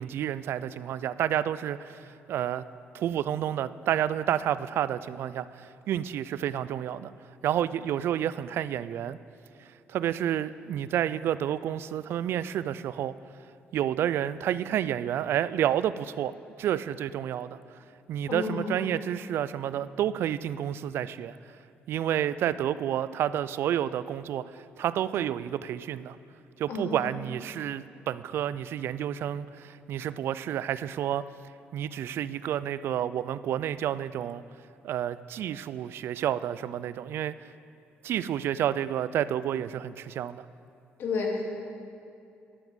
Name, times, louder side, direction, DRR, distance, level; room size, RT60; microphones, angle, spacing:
voice 1, 0.0-2.6 2.9-7.1 7.4-9.2 9.6-13.1 13.7-17.6 18.1-21.4 21.9-26.2 26.6-31.2 31.7-34.4 34.8-37.3 38.0-40.4, right 10 dB, 70° right, 16 dB, 0.3 m, -30 dB
voice 2, 18.3-18.8 26.7-27.0 41.0-41.4, left 4 dB, 65° left, 0 dB, 2.1 m, -31 dB
11.5 x 7.2 x 7.1 m, 2.5 s
cardioid pair, 115°, 4 cm